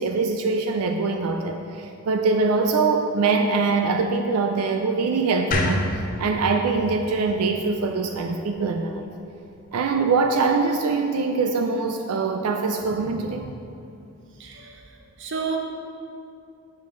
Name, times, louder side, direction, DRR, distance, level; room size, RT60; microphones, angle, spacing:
voice 1, 0.0-9.1 9.7-13.5, right 4 dB, 90° right, 4 dB, 0.4 m, -23 dB
sound 1, 5.5-8.7, left 2 dB, 40° left, 0.6 m, -29 dB
voice 2, 14.4-14.8 15.2-15.6, right 5 dB, 55° right, 1 dB, 0.8 m, -30 dB
8.2 x 5.4 x 3.8 m, 2.7 s
head